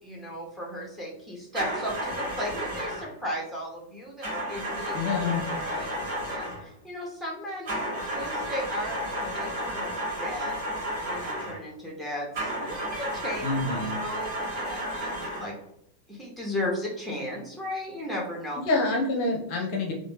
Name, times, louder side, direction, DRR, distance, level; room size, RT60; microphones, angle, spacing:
voice 1, 0.0-5.0 5.6-10.6 11.1-13.4 14.0-15.5 16.1-18.6, left 1 dB, 5° right, -3 dB, 1.0 m, -36 dB
sound 1, 1.5-3.1 4.2-6.7 7.7-11.6 12.3-15.6, equal, 45° right, 1.1 m, -32 dB
voice 2, 4.9-5.5 13.4-14.0 18.7-19.9, left 3 dB, 45° left, 0 dB, 0.6 m, -27 dB
3.0 x 2.2 x 3.1 m, 0.75 s
figure-of-eight pair, 90°, 0 cm